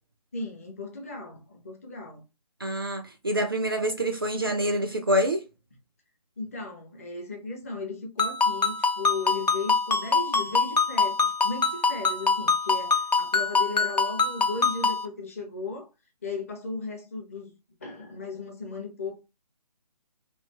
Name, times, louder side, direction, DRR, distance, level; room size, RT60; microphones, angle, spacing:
voice 1, 0.3-2.2 6.4-11.2 11.4-15.9 16.2-17.5 17.8-19.2, left 3 dB, 20° left, 0.5 m, -36 dB
voice 2, 2.6-5.4, equal, 35° right, 0.4 m, -26 dB
Ringtone, 8.2-15.1, left 4 dB, 75° left, 0.7 m, -24 dB
3.2 x 2.4 x 3.2 m
figure-of-eight pair, 145°, 21 cm